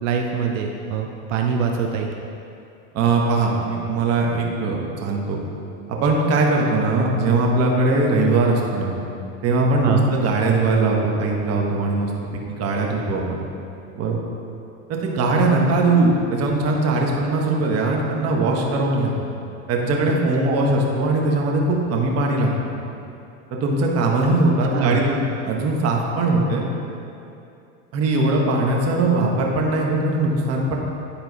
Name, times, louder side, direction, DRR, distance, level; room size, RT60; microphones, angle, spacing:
voice 1, 0.0-2.1 9.8-10.1 20.4-20.6 24.7-25.0, right 7 dB, 85° right, 2 dB, 0.7 m, -24 dB
voice 2, 2.9-5.4 5.9-8.9 9.4-12.1 12.5-13.4 13.9-14.2 14.9-19.1 19.7-22.5 23.5-26.6 27.9-30.8, right 2 dB, 40° right, -1 dB, 1.3 m, -20 dB
10.0 x 4.3 x 4.0 m, 2.7 s
supercardioid pair, 110°, 37 cm